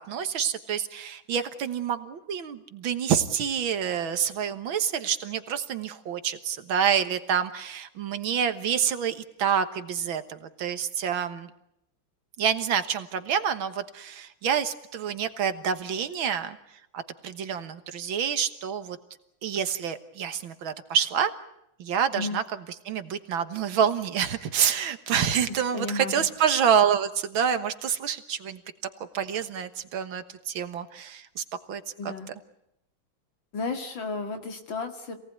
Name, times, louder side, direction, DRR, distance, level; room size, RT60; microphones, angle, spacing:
voice 1, 0.0-11.5 12.4-16.6 16.9-19.0 19.4-21.3 21.8-22.4 22.9-28.6 29.1-32.1, right 8 dB, 85° right, 11 dB, 2.1 m, -27 dB
voice 2, 25.7-26.1 32.0-32.3 33.5-35.1, left 3 dB, 70° left, 6 dB, 3.1 m, -33 dB
26.5 x 18.5 x 9.4 m, 0.81 s
omnidirectional pair, 2.2 m